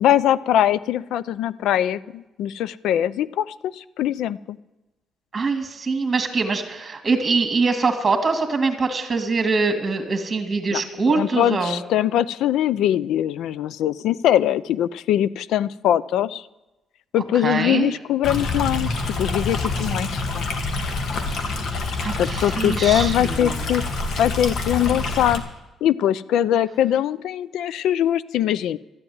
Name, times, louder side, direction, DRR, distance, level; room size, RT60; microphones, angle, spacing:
voice 1, 0.0-4.6 10.7-10.8 11.1-16.5 17.1-20.5 22.2-23.8 24.2-25.4 25.8-28.8, left 11 dB, 85° left, 18 dB, 0.4 m, -22 dB
voice 2, 5.3-11.8 17.4-17.9 22.0-23.7, right 4 dB, 30° right, 6 dB, 2.1 m, -23 dB
Stream, 18.2-25.4, left 3 dB, 65° left, 1.9 m, -26 dB
13.0 x 7.8 x 9.3 m, 1.0 s
cardioid pair, 90°, 0 cm